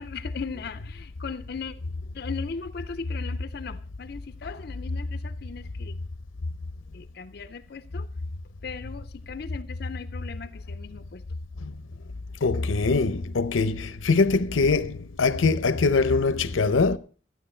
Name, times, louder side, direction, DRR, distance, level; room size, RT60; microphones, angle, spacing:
voice 1, 0.0-1.7 2.1-5.9 6.9-8.1 8.6-11.2, left 5 dB, 50° left, 0.5 m, -38 dB
voice 2, 12.4-17.0, left 4 dB, 85° left, 0.7 m, -23 dB
14.0 x 9.3 x 4.3 m
head